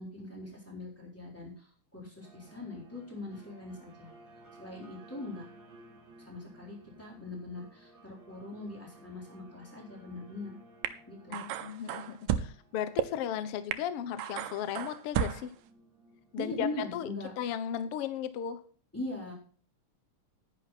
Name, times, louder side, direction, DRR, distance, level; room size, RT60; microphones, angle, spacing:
voice 1, 0.0-4.1 4.6-5.4 6.2-10.6 11.1-11.4 16.4-17.3 18.9-19.3, left 2 dB, 5° left, -2 dB, 3.6 m, -41 dB
sound 1, 2.2-18.5, right 1 dB, 35° right, 2.7 m, -57 dB
sound 2, 10.8-10.9 11.3-12.5 13.0-13.1 13.7-13.8 14.2-15.5, right 10 dB, 90° right, 2.4 m, -32 dB
voice 2, 11.3-15.5 16.3-17.1 17.4-18.6, left 9 dB, 75° left, 12 dB, 1.3 m, -35 dB
10.5 x 10.5 x 4.1 m, 0.42 s
omnidirectional pair, 3.8 m